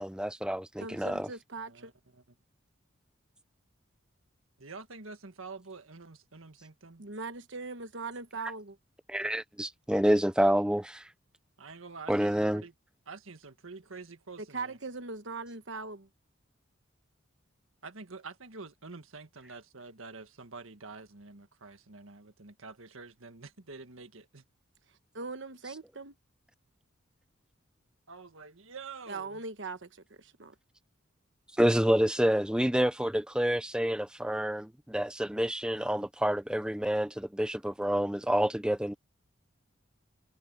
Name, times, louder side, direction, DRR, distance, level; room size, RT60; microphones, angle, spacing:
voice 1, 0.0-1.3 9.1-11.0 12.1-12.6 31.6-38.9, equal, 5° right, 0.5 m, -28 dB
voice 2, 0.8-1.9 7.0-8.8 14.4-16.1 24.9-26.2 29.1-30.5, right 3 dB, 60° right, 1.2 m, -40 dB
voice 3, 1.6-2.2 4.6-7.0 11.6-12.7 13.1-14.8 17.8-24.5 28.1-29.4, right 4 dB, 80° right, 1.7 m, -47 dB
head